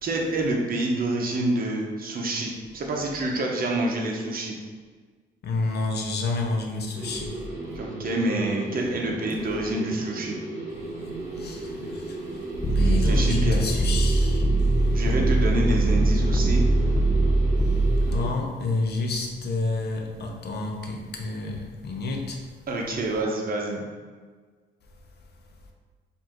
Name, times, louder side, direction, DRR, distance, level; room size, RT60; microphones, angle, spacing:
voice 1, 0.0-4.6 7.7-10.3 12.8-13.6 14.9-16.6 22.7-23.8, right 2 dB, 45° right, 0 dB, 0.8 m, -27 dB
voice 2, 5.4-7.3 11.4-12.2 12.7-14.4 18.1-22.4, left 3 dB, 55° left, 1 dB, 0.8 m, -29 dB
sound 1, 6.9-18.3, right 2 dB, 20° right, 1.3 m, -35 dB
sound 2, 12.6-18.2, right 2 dB, 15° left, 0.3 m, -21 dB
4.8 x 2.7 x 3.0 m, 1.5 s
cardioid pair, 90°, 20 cm